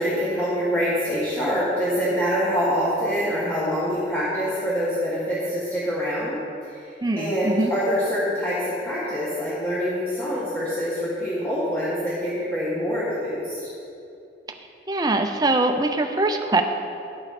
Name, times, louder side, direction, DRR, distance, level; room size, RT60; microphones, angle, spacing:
voice 1, 0.0-6.4 6.7-6.8 7.1-13.6, equal, 10° left, -9 dB, 1.6 m, -25 dB
voice 2, 7.0-7.7 14.9-16.6, right 2 dB, 20° right, 5 dB, 0.5 m, -22 dB
10.5 x 8.4 x 4.2 m, 2.7 s
head